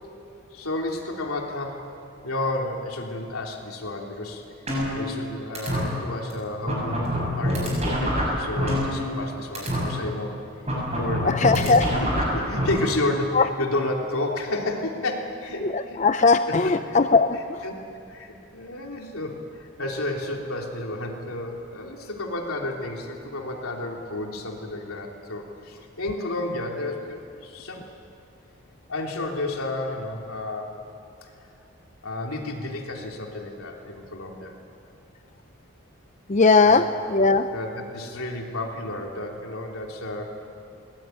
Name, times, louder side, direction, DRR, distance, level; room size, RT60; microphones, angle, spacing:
voice 1, 0.5-1.9 2.2-4.4 4.9-10.4 11.0-16.0 16.5-16.7 17.3-17.8 18.1-27.8 28.9-30.7 32.0-34.5 36.6-36.8 37.5-40.3, left 2 dB, 85° left, 1 dB, 3.2 m, -31 dB
sound 1, 4.7-5.3 5.5-5.8 6.3-6.4 6.7-9.3 9.5-9.8 10.7-12.7, equal, 30° right, 7.8 m, -25 dB
voice 2, 11.2-11.9 13.3-13.5 15.6-17.6 36.3-36.8 37.1-37.5, left 4 dB, 35° left, 9 dB, 0.5 m, -19 dB
21.5 x 18.5 x 9.2 m, 2.6 s
head